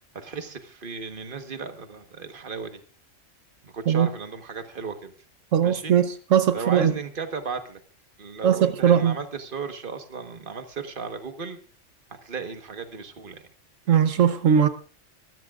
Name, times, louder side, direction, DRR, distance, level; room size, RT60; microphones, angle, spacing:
voice 1, 0.1-2.8 3.6-5.1 5.6-5.9 6.5-7.8 8.2-11.6 12.1-13.4, right 5 dB, 45° right, 7 dB, 1.5 m, -35 dB
voice 2, 5.5-6.9 8.4-9.2 13.9-14.7, right 8 dB, 80° right, 10 dB, 1.2 m, -20 dB
24.0 x 14.0 x 2.4 m, 0.38 s
omnidirectional pair, 1.3 m